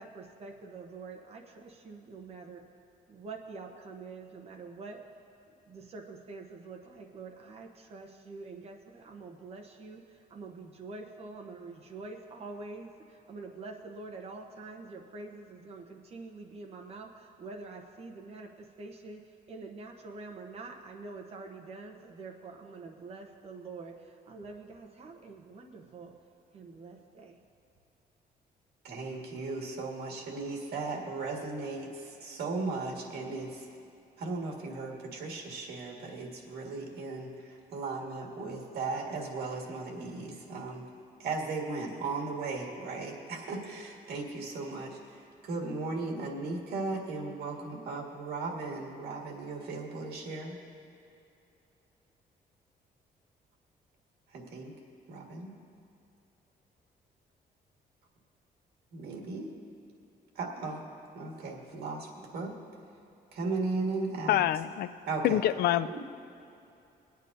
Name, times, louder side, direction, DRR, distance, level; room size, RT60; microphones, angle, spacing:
voice 1, 0.0-2.6 3.1-5.0 5.6-19.2 19.5-26.2 26.5-27.4, right 3 dB, 40° right, 2 dB, 1.0 m, -46 dB
voice 2, 28.8-33.7 34.2-40.9 41.2-50.6 54.3-54.7 55.1-55.5 58.9-59.5 60.4-60.8 61.1-62.5 63.3-64.4 65.1-65.4, right 3 dB, 85° right, 0 dB, 1.8 m, -36 dB
voice 3, 64.3-64.9 65.2-65.9, left 12 dB, 80° left, 14 dB, 0.4 m, -26 dB
22.5 x 9.1 x 2.7 m, 2.7 s
cardioid pair, 175°, 16 cm